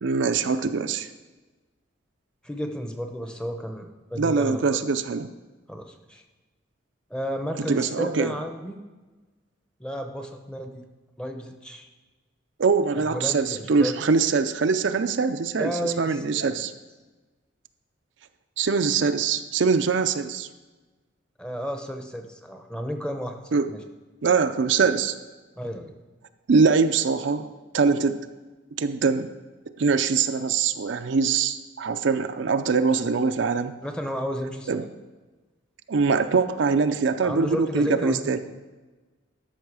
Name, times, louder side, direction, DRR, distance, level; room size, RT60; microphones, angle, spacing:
voice 1, 0.0-1.1 4.2-5.3 7.7-8.3 12.6-16.7 18.6-20.5 23.5-23.7 24.2-25.1 26.5-27.5 27.7-28.2 28.8-29.3 29.8-33.7 34.7-34.8 35.9-38.4, right 5 dB, 60° right, 9 dB, 0.5 m, -23 dB
voice 2, 2.4-4.8 5.7-6.2 7.1-8.8 9.8-10.8 11.2-11.9 13.1-13.9 15.6-16.6 21.4-23.8 25.6-25.9 33.8-34.9 37.2-38.4, equal, 5° left, 5 dB, 0.8 m, -32 dB
12.5 x 6.3 x 4.8 m, 1.3 s
head